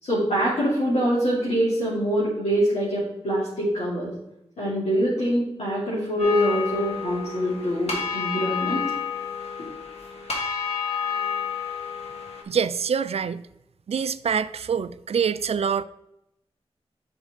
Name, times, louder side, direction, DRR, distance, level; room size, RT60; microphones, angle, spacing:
voice 1, 0.0-4.1 4.6-8.8, equal, 90° left, -10 dB, 2.7 m, -24 dB
sound 1, 6.2-12.4, left 6 dB, 70° left, 1.7 m, -30 dB
voice 2, 12.5-13.4 13.9-15.8, right 7 dB, 70° right, 14 dB, 0.4 m, -25 dB
8.5 x 5.4 x 3.6 m, 0.83 s
wide cardioid pair, 100°, 11 cm